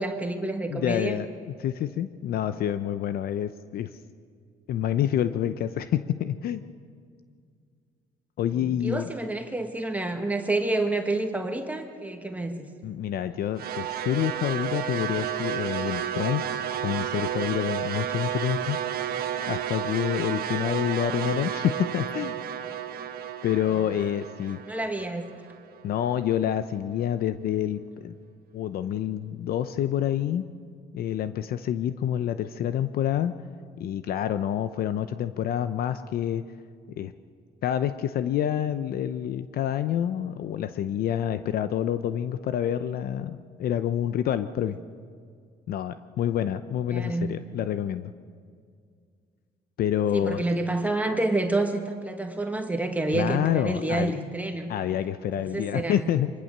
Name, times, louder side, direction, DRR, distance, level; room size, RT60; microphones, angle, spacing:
voice 1, 0.0-1.2 8.5-12.7 24.6-25.2 46.9-47.4 50.1-54.7 55.4-56.1, right 2 dB, 10° right, 4 dB, 1.6 m, -28 dB
voice 2, 0.7-3.9 4.7-6.6 8.4-9.1 12.8-16.5 16.8-18.8 19.5-22.3 23.4-24.6 25.8-28.2 28.5-30.5 30.9-33.3 33.8-36.4 36.9-37.1 37.6-44.8 45.7-48.1 49.8-50.4 53.1-54.1 54.7-56.3, left 10 dB, 65° left, 11 dB, 0.7 m, -27 dB
sound 1, 13.6-25.8, right 10 dB, 65° right, 1.4 m, -32 dB
24.5 x 20.0 x 6.7 m, 2.2 s
cardioid pair, 110°, 17 cm